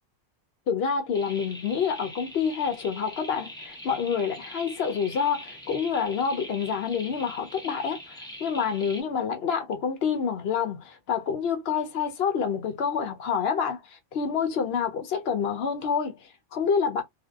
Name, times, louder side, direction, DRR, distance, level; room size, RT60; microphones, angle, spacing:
voice 1, 0.7-17.0, left 6 dB, 65° left, 0.8 m, -28 dB
sound 1, 1.1-9.0, left 1 dB, 5° left, 0.4 m, -43 dB
2.6 x 2.1 x 2.3 m
omnidirectional pair, 1.3 m